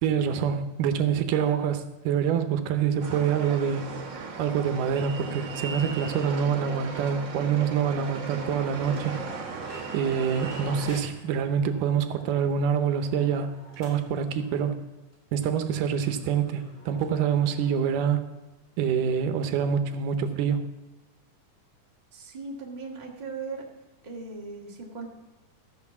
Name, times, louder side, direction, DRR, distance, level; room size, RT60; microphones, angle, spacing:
voice 1, 0.0-3.9 4.4-9.1 9.9-13.5 13.8-14.8 15.3-18.3 18.8-20.7, right 7 dB, 80° right, 9 dB, 2.3 m, -26 dB
sound 1, 3.0-11.0, right 4 dB, 55° right, 1.4 m, -37 dB
sound 2, 5.7-6.3 6.7-6.8 7.0-7.1 7.6-14.7 15.1-15.2 15.4-15.5 16.0-18.0, equal, 15° left, 3.8 m, -51 dB
voice 2, 22.1-23.6 24.0-25.1, right 4 dB, 20° right, -2 dB, 1.1 m, -38 dB
14.0 x 6.3 x 7.1 m, 1.1 s
omnidirectional pair, 3.8 m